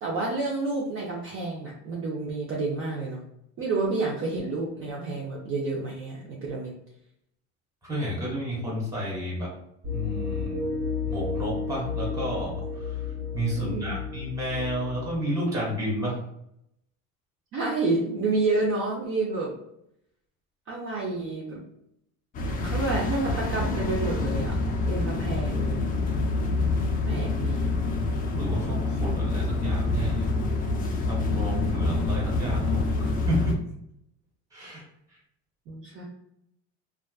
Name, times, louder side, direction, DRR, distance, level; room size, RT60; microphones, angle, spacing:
voice 1, 0.0-3.2 3.6-6.7 13.6-13.9 17.5-19.5 20.7-21.6 22.6-24.6 24.9-25.7 27.0-27.7 35.7-36.0, right 3 dB, 40° right, -3 dB, 0.5 m, -29 dB
voice 2, 7.8-9.5 9.9-10.6 11.1-13.0 13.3-16.2 27.1-27.2 28.3-30.3 31.0-33.6 34.5-34.8 35.1-35.2, equal, 10° right, -4 dB, 1.3 m, -31 dB
sound 1, 9.8-15.2, left 5 dB, 65° right, 1.4 m, -32 dB
sound 2, 22.3-33.5, left 3 dB, 25° left, 0.3 m, -27 dB
2.4 x 2.3 x 2.3 m, 0.77 s
supercardioid pair, 115°, 33 cm